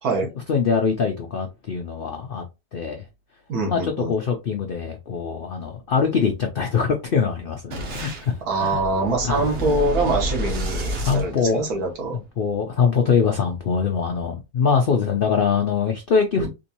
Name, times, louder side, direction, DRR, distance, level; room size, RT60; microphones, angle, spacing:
voice 1, 0.5-2.4 2.7-3.0 3.7-8.8 9.2-9.5 11.0-11.6 12.1-16.5, left 6 dB, 75° left, 0.5 m, -23 dB
voice 2, 3.5-4.1 8.5-12.2 16.4-16.5, right 2 dB, 70° right, 1.5 m, -24 dB
Boom, 7.7-12.1, right 1 dB, 55° right, 1.0 m, -30 dB
3.7 x 2.6 x 2.8 m
omnidirectional pair, 1.6 m